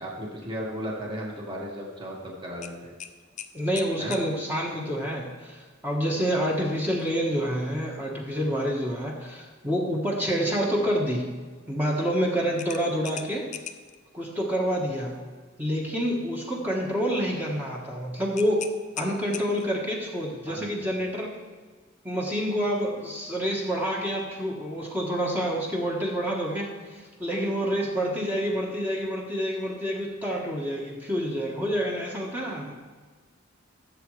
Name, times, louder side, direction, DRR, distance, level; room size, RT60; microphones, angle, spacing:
voice 1, 0.0-2.9 4.0-4.1 20.5-21.0, equal, 25° right, -3 dB, 1.7 m, -35 dB
sound 1, 2.6-4.3 6.9-7.1 7.6-7.7 12.6-14.0 18.4-19.8, left 8 dB, 35° left, 0.5 m, -40 dB
voice 2, 3.5-11.3 11.7-13.4 14.1-15.2 15.6-18.6 19.0-21.3 22.0-32.7, equal, 10° right, -3 dB, 1.3 m, -28 dB
14.5 x 7.6 x 3.2 m, 1.4 s
head